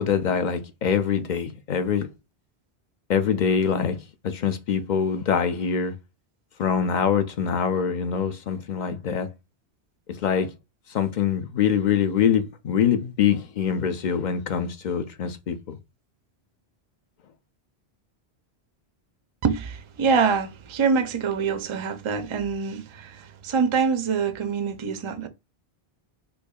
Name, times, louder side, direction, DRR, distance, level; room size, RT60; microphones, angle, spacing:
voice 1, 0.0-2.1 3.1-4.0 4.2-5.9 6.6-9.3 10.2-10.5 10.9-15.8, left 7 dB, 55° left, 0.6 m, -24 dB
voice 2, 19.4-25.3, right 5 dB, 45° right, 0.4 m, -25 dB
4.5 x 2.7 x 2.3 m
omnidirectional pair, 1.1 m